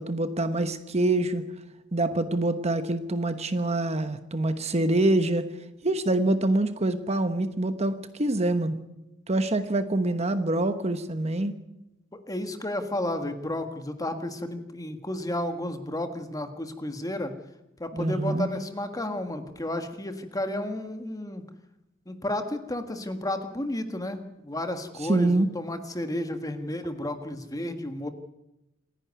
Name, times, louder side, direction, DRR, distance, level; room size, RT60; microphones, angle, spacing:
voice 1, 0.0-1.4 1.9-5.4 5.8-8.8 9.3-11.5 17.9-18.5 25.0-25.5, right 2 dB, 35° right, 10 dB, 1.1 m, -25 dB
voice 2, 12.3-17.3 17.8-21.4 22.1-28.1, left 1 dB, 20° left, 7 dB, 1.7 m, -32 dB
27.0 x 11.0 x 9.5 m, 0.92 s
head